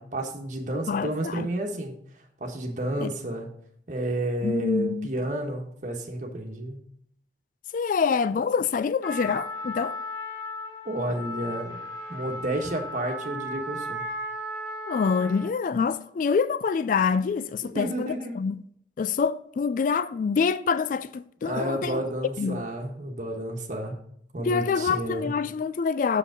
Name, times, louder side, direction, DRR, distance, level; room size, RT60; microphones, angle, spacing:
voice 1, 0.0-1.9 2.4-3.5 3.9-6.8 10.8-11.8 12.1-14.0 17.7-18.4 21.4-24.0 24.3-25.3, right 1 dB, 45° right, 1.4 m, -31 dB
voice 2, 0.9-1.5 3.0-3.1 4.4-5.1 7.7-10.0 14.9-18.6 19.0-22.0 22.4-22.6 24.4-26.2, left 5 dB, 45° left, 0.3 m, -26 dB
Trumpet, 9.0-15.6, equal, 80° left, 2.5 m, -36 dB
7.1 x 4.9 x 5.0 m
head